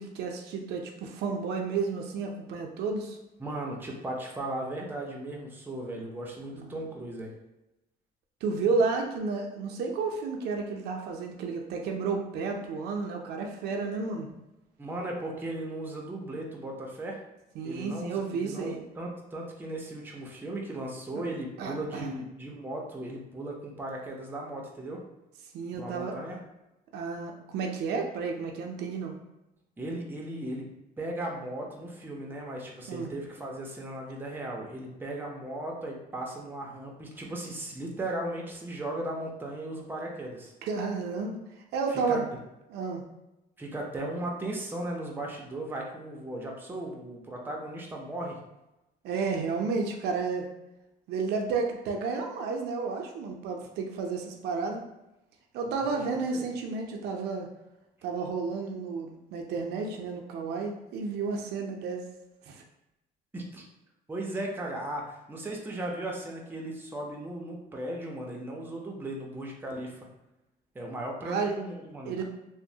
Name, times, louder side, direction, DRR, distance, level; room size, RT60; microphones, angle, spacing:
voice 1, 0.0-3.2 6.5-6.8 8.4-14.3 17.6-18.8 21.6-22.1 25.5-26.1 26.9-29.1 32.9-33.1 40.6-41.4 41.7-42.2 42.7-43.0 49.0-50.5 51.1-54.8 55.5-57.5 58.0-62.1 62.5-62.6 71.2-71.5 72.1-72.2, right 4 dB, 75° right, 2 dB, 0.5 m, -31 dB
voice 2, 3.4-7.3 14.8-17.2 17.6-25.0 25.7-26.4 29.8-30.7 31.0-40.5 41.9-42.2 43.6-48.4 55.6-56.5 63.3-63.6 64.1-70.1 70.7-72.2, right 1 dB, 10° right, -1 dB, 0.5 m, -37 dB
2.9 x 2.0 x 2.7 m, 0.94 s
cardioid pair, 110°, 17 cm